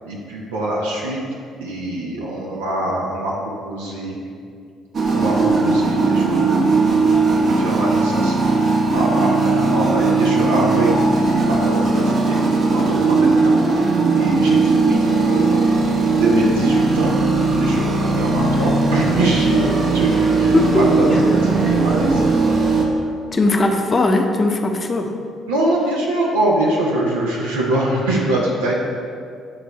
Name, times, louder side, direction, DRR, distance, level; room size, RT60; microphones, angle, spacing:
voice 1, 0.1-1.2 1.6-3.3 3.6-4.2 5.1-10.9 11.2-12.4 12.7-13.6 14.1-17.9 18.2-22.3 23.4-23.5 25.5-28.8, right 1 dB, 80° right, -4 dB, 0.7 m, -24 dB
sound 1, 4.9-22.8, right 3 dB, 50° right, 0.9 m, -18 dB
voice 2, 20.5-20.8 21.1-21.2 23.3-25.1, left 2 dB, 35° left, 4 dB, 0.8 m, -19 dB
8.8 x 3.4 x 4.2 m, 2.3 s
figure-of-eight pair, 45°, 0 cm